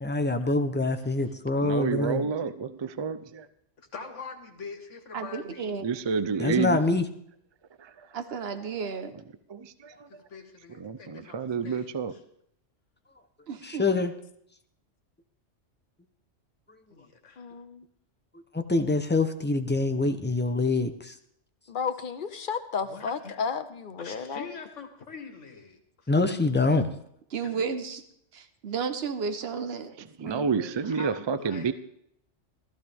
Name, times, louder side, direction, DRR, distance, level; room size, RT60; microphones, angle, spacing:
voice 1, 0.0-2.2 6.4-7.0 13.7-14.1 18.5-21.1 26.1-26.9, left 3 dB, 10° left, 8 dB, 0.6 m, -25 dB
voice 2, 1.0-1.3 3.9-5.8 10.1-12.2 16.9-17.5 22.9-23.1 24.0-26.1 27.4-27.7 30.3-31.7, left 4 dB, 75° left, 5 dB, 1.8 m, -44 dB
voice 3, 1.6-3.5 5.8-6.8 7.8-7.9 9.5-9.9 10.8-12.1 30.2-31.7, right 5 dB, 40° right, 13 dB, 0.4 m, -29 dB
voice 4, 5.1-5.8 8.1-9.1 13.5-13.9 27.3-28.0 28.3-29.9 30.2-30.5, right 5 dB, 55° right, 9 dB, 1.2 m, -33 dB
voice 5, 17.4-17.9 21.7-24.5, left 6 dB, 50° left, 10 dB, 0.9 m, -33 dB
15.0 x 13.5 x 3.5 m, 0.71 s
omnidirectional pair, 1.3 m